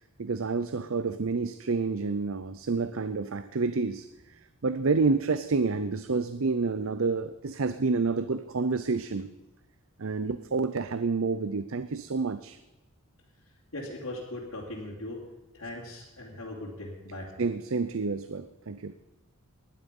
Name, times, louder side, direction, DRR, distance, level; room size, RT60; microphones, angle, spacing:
voice 1, 0.2-9.3 10.0-12.6 17.4-19.0, right 4 dB, 65° right, 12 dB, 0.6 m, -29 dB
voice 2, 13.7-15.2 15.5-17.3, left 1 dB, 75° left, -6 dB, 3.1 m, -39 dB
19.0 x 11.5 x 5.4 m, 1.1 s
head